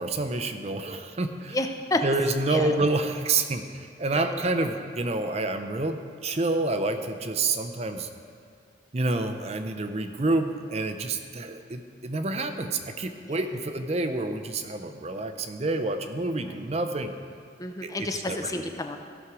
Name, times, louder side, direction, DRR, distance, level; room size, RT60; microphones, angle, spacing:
voice 1, 0.0-1.6 2.0-8.1 8.9-17.1 17.8-18.5, right 2 dB, 35° right, 7 dB, 0.5 m, -28 dB
voice 2, 1.5-2.0 2.5-2.7 4.1-4.4 13.3-13.4 17.6-19.0, left 2 dB, 20° left, 5 dB, 0.5 m, -30 dB
15.5 x 6.2 x 4.8 m, 2.3 s
head